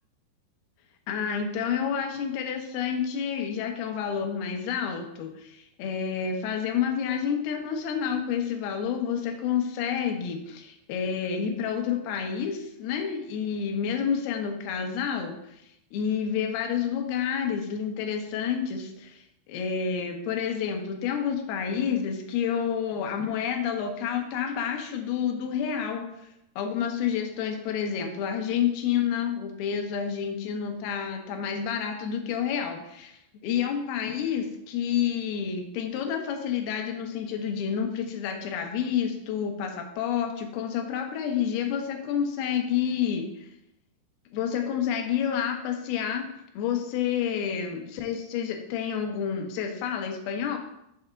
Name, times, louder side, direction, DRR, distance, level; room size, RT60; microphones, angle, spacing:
voice 1, 1.1-15.4 15.9-19.2 19.5-26.3 26.6-43.5 44.3-46.3 46.6-50.6, left 8 dB, 75° left, 4 dB, 2.5 m, -29 dB
6.7 x 3.5 x 5.7 m, 0.80 s
omnidirectional pair, 5.1 m